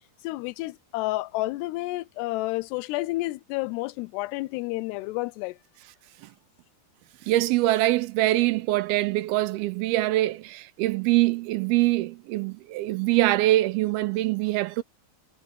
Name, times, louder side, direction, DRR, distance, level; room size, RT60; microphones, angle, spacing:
voice 1, 0.2-5.6, left 19 dB, 90° left, 2.7 m, -30 dB
voice 2, 7.3-14.8, right 17 dB, 80° right, 2.5 m, -24 dB
omnidirectional pair, 4.7 m